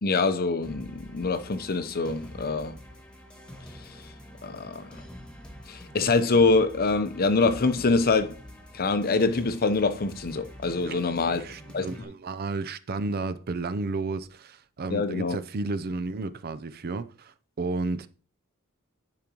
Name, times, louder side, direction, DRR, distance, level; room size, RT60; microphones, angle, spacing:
voice 1, 0.0-2.8 3.7-4.0 4.4-5.0 5.7-8.4 8.7-11.4 11.7-11.9 14.9-15.4, left 3 dB, 45° left, 0.7 m, -25 dB
sound 1, 0.6-12.0, equal, 5° left, 1.4 m, -45 dB
voice 2, 11.3-18.1, right 3 dB, 45° right, 0.5 m, -32 dB
10.5 x 5.2 x 2.9 m
head